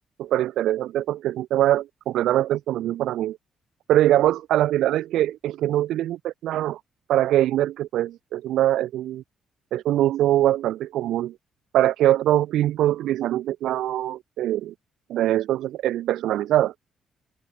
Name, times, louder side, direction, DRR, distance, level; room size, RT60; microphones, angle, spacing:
voice 1, 0.2-3.4 3.9-6.8 7.1-9.2 9.7-11.3 11.7-14.7 15.1-16.7, right 13 dB, 80° right, 1.1 m, -23 dB
cardioid pair, 90°, 0 cm